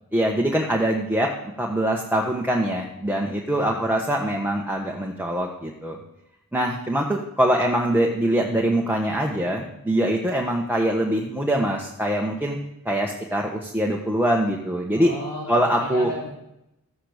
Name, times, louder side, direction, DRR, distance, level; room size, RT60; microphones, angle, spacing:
voice 1, 0.1-1.3 1.6-6.0 6.5-12.6 12.8-15.1 15.5-16.1, right 1 dB, 5° right, 0 dB, 1.3 m, -23 dB
voice 2, 14.9-16.3, left 1 dB, 65° left, -4 dB, 3.4 m, -34 dB
13.5 x 8.9 x 5.1 m, 0.85 s
wide cardioid pair, 75°, 36 cm